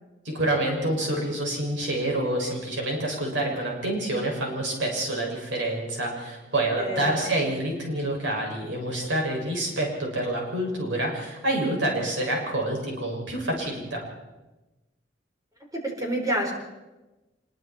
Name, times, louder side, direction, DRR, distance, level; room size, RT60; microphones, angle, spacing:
voice 1, 0.2-14.0, right 1 dB, 75° right, -1 dB, 6.8 m, -27 dB
voice 2, 6.8-7.2 15.7-16.5, right 1 dB, 20° right, 1 dB, 4.6 m, -28 dB
25.5 x 22.0 x 4.6 m, 1.1 s
head